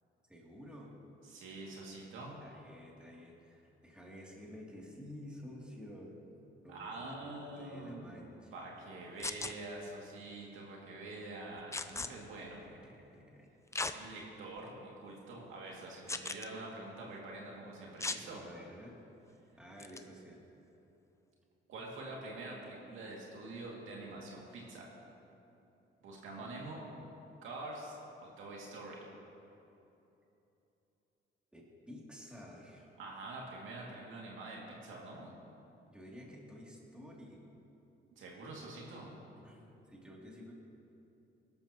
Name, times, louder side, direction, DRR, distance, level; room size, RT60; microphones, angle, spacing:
voice 1, 0.3-1.0 2.4-6.1 6.6-8.7 12.6-13.5 14.1-14.2 18.4-19.0 19.6-20.4 26.4-27.0 31.5-32.9 35.9-37.4 39.3-40.5, equal, 5° right, -4 dB, 2.8 m, -52 dB
voice 2, 1.3-2.3 6.7-8.2 8.5-12.6 13.9-18.4 21.7-24.9 26.0-26.8 27.4-29.0 33.0-35.3 38.2-39.1, right 2 dB, 80° right, -3 dB, 2.4 m, -46 dB
sound 1, 9.2-9.5 11.7-12.1 13.7-14.0 14.6-14.7 16.1-16.5 18.0-18.2 19.8-20.0, left 3 dB, 15° left, 0.5 m, -37 dB
18.0 x 12.0 x 3.0 m, 3.0 s
cardioid pair, 90°, 20 cm